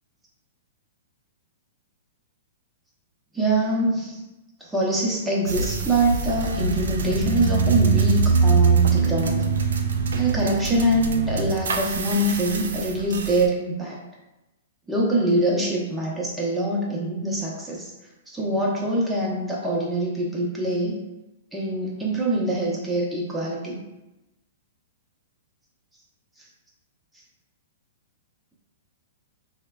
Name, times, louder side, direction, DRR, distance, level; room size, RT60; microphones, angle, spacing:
voice 1, 3.3-4.2 4.6-9.4 10.2-14.0 14.9-17.9 18.3-21.0 21.5-23.8, right 1 dB, 10° right, -4 dB, 0.7 m, -24 dB
sound 1, 5.5-13.4, right 5 dB, 75° right, 0.3 m, -23 dB
3.1 x 2.1 x 2.3 m, 1.0 s
hypercardioid pair, 120°, 0 cm